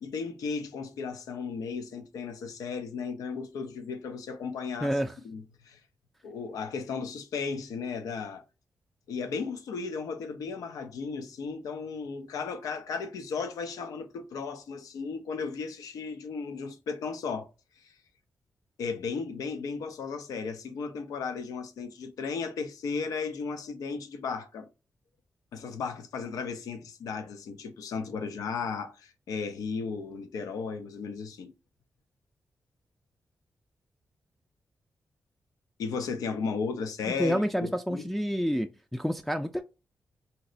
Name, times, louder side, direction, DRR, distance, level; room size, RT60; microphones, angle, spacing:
voice 1, 0.0-5.0 5.2-5.8 6.2-8.4 9.1-17.5 17.8-17.9 18.8-24.7 25.5-31.5 35.8-38.1, left 5 dB, 90° left, 0.4 m, -35 dB
voice 2, 4.8-5.1 37.0-39.6, equal, 5° left, 0.3 m, -29 dB
3.9 x 2.0 x 2.5 m
cardioid pair, 55°, 6 cm